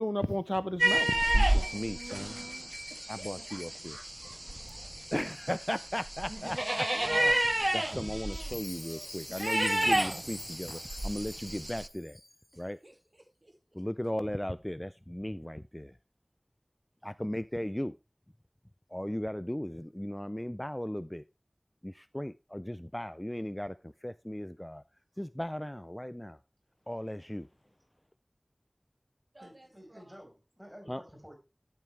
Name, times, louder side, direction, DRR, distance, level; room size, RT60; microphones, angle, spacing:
voice 1, 0.0-2.4 3.1-3.9 5.1-12.2 12.6-12.8 13.8-16.0 17.0-18.0 18.9-21.2 21.8-24.8 25.2-26.4 26.9-27.5 30.9-31.0, equal, 20° left, 0.4 m, -36 dB
sound 1, 0.8-11.9, right 1 dB, 35° right, 0.5 m, -31 dB
voice 2, 2.9-4.4 4.6-4.9 8.8-9.2 12.5-13.6 29.3-30.2 30.8-31.0, right 1 dB, 65° right, 2.3 m, -55 dB
Chime, 8.3-12.6, left 1 dB, 40° left, 2.5 m, -46 dB
voice 3, 29.4-31.4, equal, 10° right, 4.9 m, -51 dB
11.5 x 7.4 x 3.3 m
wide cardioid pair, 40°, 0 cm